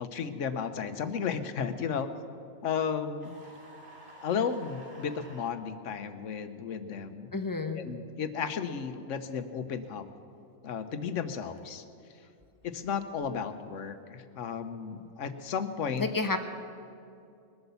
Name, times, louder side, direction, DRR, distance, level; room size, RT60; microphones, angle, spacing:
voice 1, 0.0-2.1 2.6-3.3 4.2-7.3 7.8-10.0 10.6-11.8 12.6-16.1, left 6 dB, 85° left, 10 dB, 1.2 m, -34 dB
sound 1, 3.2-5.5, right 1 dB, 65° right, 2.7 m, -51 dB
voice 2, 7.3-7.8 16.0-16.4, left 3 dB, 20° left, 6 dB, 0.7 m, -30 dB
21.0 x 8.1 x 6.9 m, 2.5 s
omnidirectional pair, 1.3 m